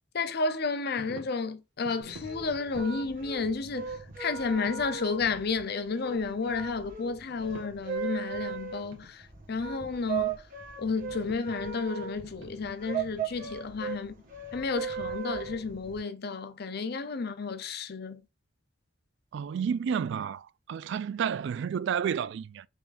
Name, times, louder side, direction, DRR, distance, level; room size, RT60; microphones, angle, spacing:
voice 1, 0.1-3.9 4.2-10.4 10.8-14.1 14.5-18.2, left 4 dB, 55° left, 0.6 m, -32 dB
sound 1, 1.0-1.4 1.8-3.0 4.1-5.0 5.3-5.4 6.1-6.9 7.2-8.6 8.9-9.1 9.5-10.4 11.0-11.4 11.8-14.4, right 1 dB, 85° right, 1.6 m, -51 dB
sound 2, 2.0-16.0, right 6 dB, 45° right, 1.3 m, -38 dB
voice 2, 19.3-22.7, right 7 dB, 65° right, 0.3 m, -31 dB
5.5 x 3.5 x 2.6 m
head